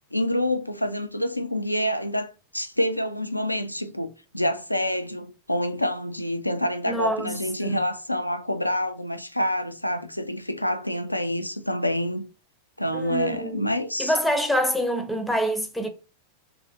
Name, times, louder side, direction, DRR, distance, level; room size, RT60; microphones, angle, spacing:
voice 1, 0.1-12.3 12.8-14.1, left 1 dB, 85° left, 0.4 m, -27 dB
voice 2, 6.9-7.8 12.9-13.6 14.0-15.9, equal, 5° left, 0.6 m, -26 dB
3.1 x 2.6 x 3.7 m
figure-of-eight pair, 90°, 0 cm